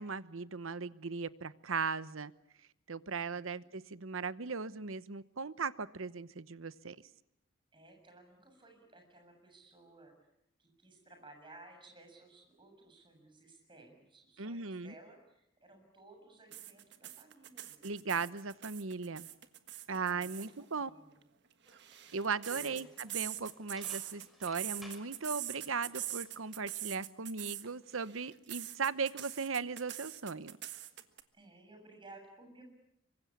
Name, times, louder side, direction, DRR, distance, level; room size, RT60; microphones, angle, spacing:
voice 1, 0.0-2.3 2.9-7.0 14.4-14.9 17.8-19.3 19.9-20.9 22.1-30.6, right 5 dB, 75° right, 15 dB, 1.0 m, -38 dB
voice 2, 3.0-3.6 7.7-10.1 10.6-18.3 20.6-21.2 22.5-22.8 31.3-32.6, right 2 dB, 25° right, 4 dB, 7.2 m, -58 dB
sound 1, 16.5-20.5 21.5-27.7 28.0-31.2, right 13 dB, 55° right, 1.5 m, -43 dB
sound 2, 21.7-26.6, equal, ahead, 5.0 m, -57 dB
26.0 x 24.5 x 8.6 m, 0.80 s
head